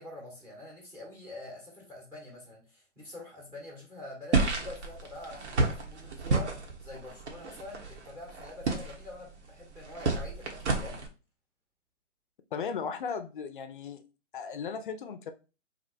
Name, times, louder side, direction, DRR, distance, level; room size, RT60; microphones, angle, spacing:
voice 1, 0.0-11.0, left 2 dB, 5° right, 0.7 m, -46 dB
sound 1, 4.3-11.1, right 3 dB, 65° right, 1.0 m, -31 dB
voice 2, 12.5-14.0 14.3-15.3, left 6 dB, 45° left, 0.5 m, -36 dB
2.8 x 2.1 x 4.0 m
figure-of-eight pair, 135°, 37 cm